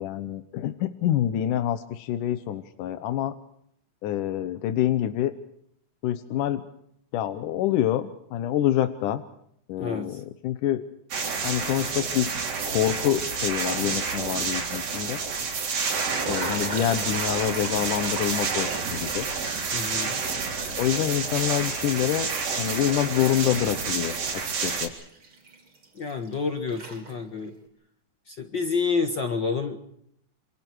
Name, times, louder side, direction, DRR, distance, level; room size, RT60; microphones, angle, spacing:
voice 1, 0.0-3.3 4.0-5.3 6.0-6.6 7.1-9.2 9.7-10.8 11.4-12.3 12.7-15.2 16.3-19.3 20.3-20.4 20.8-22.3 22.6-24.1 24.4-24.9, left 12 dB, 70° left, 10 dB, 2.3 m, -26 dB
voice 2, 9.8-10.2 19.7-20.2 25.9-27.5 28.3-29.8, left 4 dB, 50° left, 7 dB, 1.3 m, -29 dB
sound 1, 11.1-24.9, right 5 dB, 65° right, 5.6 m, -29 dB
sound 2, 15.6-21.9 22.2-26.4 26.7-27.5, right 3 dB, 35° right, 4.8 m, -40 dB
28.5 x 27.5 x 4.7 m, 0.72 s
omnidirectional pair, 4.3 m